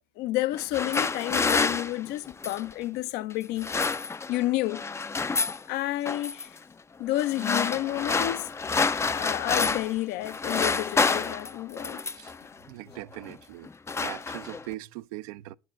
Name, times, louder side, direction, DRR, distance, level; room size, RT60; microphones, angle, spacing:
voice 1, 0.2-3.7 4.3-4.8 5.7-6.6 7.0-8.5 9.0-12.0, left 16 dB, 65° left, 0.5 m, -30 dB
sound 1, 0.5-2.7 3.4-4.4 4.7-5.6 6.1-6.5 7.2-10.0 10.2-12.4 13.1-13.4 13.6-14.7, left 4 dB, 15° left, 0.3 m, -28 dB
voice 2, 12.7-13.7 14.0-15.5, right 18 dB, 75° right, 0.4 m, -40 dB
11.0 x 4.7 x 5.1 m
hypercardioid pair, 65°, 18 cm